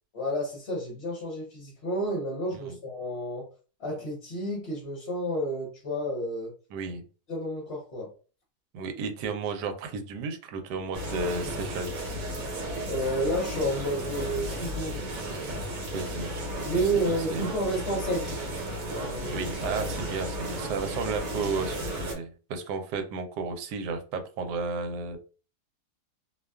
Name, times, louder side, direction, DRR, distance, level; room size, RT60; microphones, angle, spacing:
voice 1, 0.1-3.5 3.8-6.5 7.3-8.1 12.9-15.0 16.7-18.4 18.9-19.4, right 1 dB, 50° left, -4 dB, 0.9 m, -30 dB
voice 2, 6.7-7.0 8.7-12.0 15.9-17.5 19.3-25.2, right 4 dB, 85° right, 7 dB, 1.2 m, -33 dB
sound 1, 10.9-22.1, equal, 60° right, 1.2 m, -34 dB
2.7 x 2.2 x 2.3 m, 0.36 s
omnidirectional pair, 1.7 m